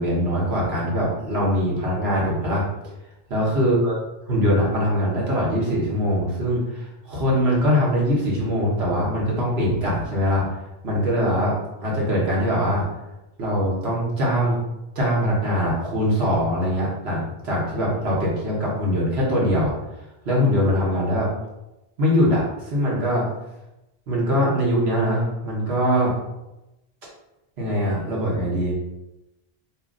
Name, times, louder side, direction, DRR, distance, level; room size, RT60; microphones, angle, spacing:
voice 1, 0.0-2.7 3.3-3.9 4.3-10.5 10.8-11.6 11.8-12.9 13.4-14.6 14.9-19.8 20.2-21.3 22.0-23.3 24.1-26.1 27.6-28.7, equal, 85° right, -5 dB, 1.4 m, -22 dB
2.8 x 2.7 x 3.7 m, 0.94 s
omnidirectional pair, 1.0 m